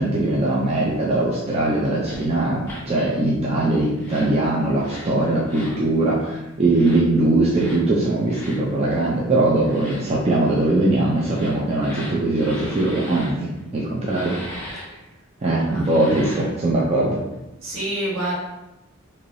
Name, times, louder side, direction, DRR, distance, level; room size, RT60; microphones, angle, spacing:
voice 1, 0.0-14.4 15.4-17.2, right 2 dB, 30° right, -5 dB, 0.4 m, -21 dB
sound 1, 2.0-2.2 2.6-2.8 3.9-4.3 4.8-5.1 5.4-5.8 6.7-7.0 7.5-7.8 8.3-8.6 9.6-10.0 11.1-13.3 14.0-14.8 15.7-16.5, left 1 dB, 10° left, 1.4 m, -38 dB
voice 2, 13.5-13.9 15.7-15.9 17.6-18.3, right 1 dB, 70° right, -7 dB, 1.3 m, -28 dB
3.1 x 2.8 x 2.6 m, 0.98 s
head